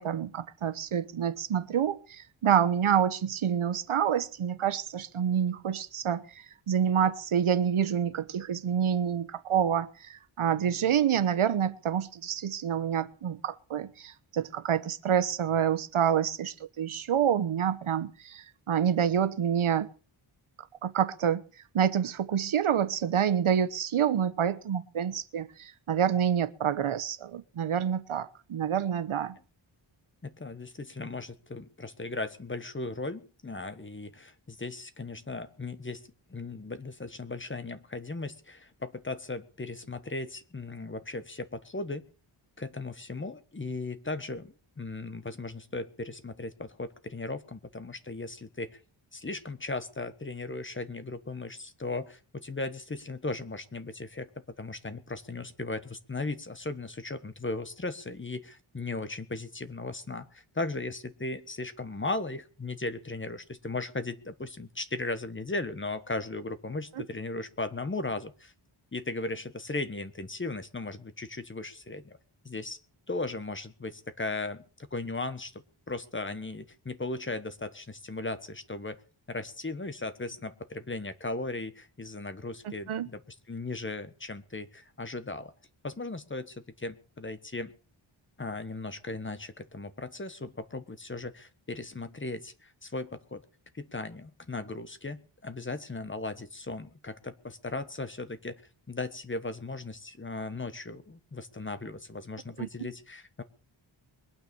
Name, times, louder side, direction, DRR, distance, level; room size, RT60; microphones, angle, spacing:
voice 1, 0.0-6.2 6.7-19.9 20.8-21.4 21.7-29.3 82.9-83.1 102.6-102.7, right 8 dB, 85° right, 1.1 m, -27 dB
voice 2, 30.2-36.0 36.3-42.1 42.6-48.8 49.1-54.3 54.6-68.5 68.9-72.2 72.4-72.8 73.1-79.0 79.3-83.2 83.5-85.5 85.8-87.7 88.4-93.4 93.7-98.6 98.9-103.4, left 2 dB, 25° left, 1.2 m, -37 dB
21.5 x 9.3 x 6.9 m
wide cardioid pair, 160°, 49 cm